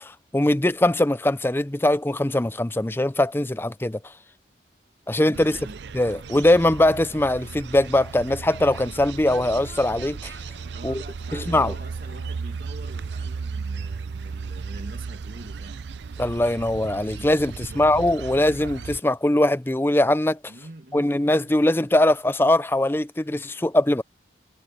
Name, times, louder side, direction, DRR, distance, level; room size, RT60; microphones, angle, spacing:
voice 1, 0.0-4.0 5.1-5.6 5.9-10.3 10.8-11.0 11.3-11.7 16.2-20.4 20.9-24.0, left 1 dB, 10° left, 0.5 m, -21 dB
voice 2, 5.3-5.8 10.7-15.9 17.5-17.9 20.5-21.5, right 1 dB, 50° right, 2.3 m, -45 dB
sound 1, 5.3-19.0, right 5 dB, 70° right, 0.5 m, -35 dB
Singing / Musical instrument, 6.1-12.4, left 2 dB, 75° left, 3.1 m, -54 dB
sound 2, 9.3-13.3, equal, 25° right, 2.6 m, -53 dB
head